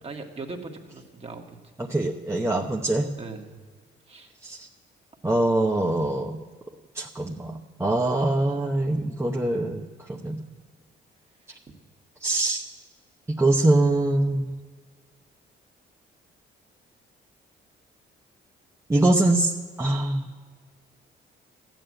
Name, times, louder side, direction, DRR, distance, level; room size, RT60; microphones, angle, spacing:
voice 1, 0.0-1.7 3.2-3.5 4.1-4.3 10.2-10.5, right 3 dB, 30° right, 2 dB, 1.8 m, -40 dB
voice 2, 1.8-3.1 4.4-4.7 5.2-6.4 6.9-10.4 12.2-12.6 13.3-14.5 18.9-19.5 19.8-20.3, right 2 dB, 15° right, 0 dB, 0.9 m, -23 dB
14.0 x 9.2 x 7.7 m, 1.5 s
cardioid pair, 90°, 20 cm